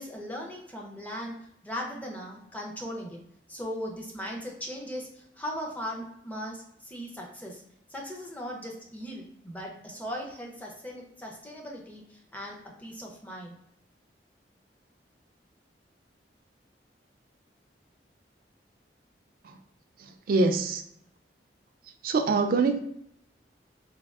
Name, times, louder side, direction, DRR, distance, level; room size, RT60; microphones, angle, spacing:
voice 1, 0.0-1.4 1.6-3.2 3.5-7.6 7.9-13.6, equal, 10° left, -1 dB, 0.5 m, -38 dB
voice 2, 20.0-20.8 22.0-22.8, right 3 dB, 50° right, 7 dB, 0.3 m, -25 dB
3.4 x 2.3 x 2.3 m, 0.73 s
head